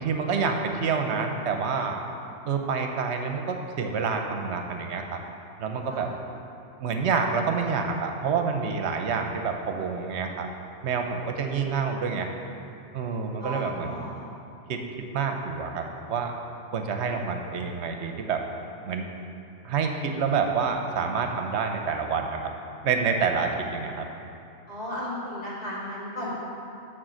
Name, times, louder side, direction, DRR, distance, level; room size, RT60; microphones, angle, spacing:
voice 1, 0.0-2.0 2.5-5.2 5.6-6.1 6.8-10.5 10.8-12.3 12.9-14.2 14.7-14.8 15.1-16.3 16.7-18.4 18.9-19.1 19.6-22.4 22.8-24.1, right 5 dB, 65° right, 4 dB, 1.0 m, -28 dB
voice 2, 13.4-14.2 24.7-26.4, equal, 35° left, -9 dB, 2.2 m, -35 dB
8.9 x 4.2 x 6.3 m, 2.6 s
omnidirectional pair, 1.3 m